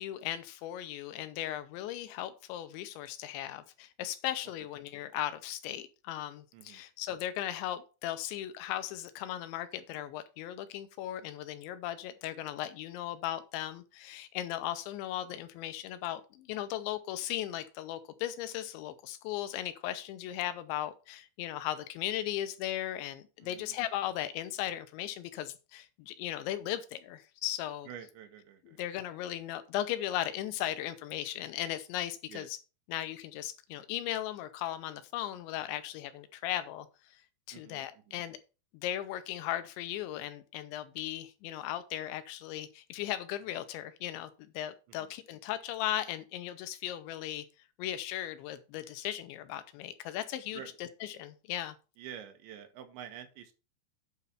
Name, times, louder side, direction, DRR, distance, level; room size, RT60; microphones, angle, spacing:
voice 1, 0.0-27.9 28.7-32.6 32.9-36.9 37.5-38.4 38.7-47.5 47.8-51.8, left 12 dB, 85° left, 11 dB, 3.1 m, -37 dB
voice 2, 6.5-6.8 23.4-23.8 27.9-28.8 32.3-32.5 37.5-37.8 38.1-38.2 45.0-45.1 50.5-50.7 52.0-53.5, right 9 dB, 85° right, 7 dB, 3.4 m, -47 dB
8.8 x 4.2 x 5.6 m, 0.32 s
omnidirectional pair, 5.1 m